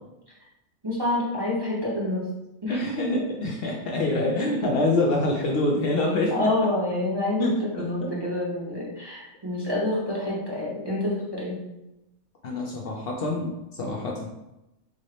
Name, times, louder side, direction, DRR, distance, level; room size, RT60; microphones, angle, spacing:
voice 1, 0.8-2.3 2.6-2.8 6.3-11.6, left 1 dB, 25° right, -6 dB, 0.6 m, -27 dB
voice 2, 2.7-6.5 7.4-8.1 12.4-14.3, left 2 dB, 60° left, -1 dB, 0.7 m, -26 dB
3.6 x 2.7 x 3.2 m, 0.93 s
omnidirectional pair, 1.2 m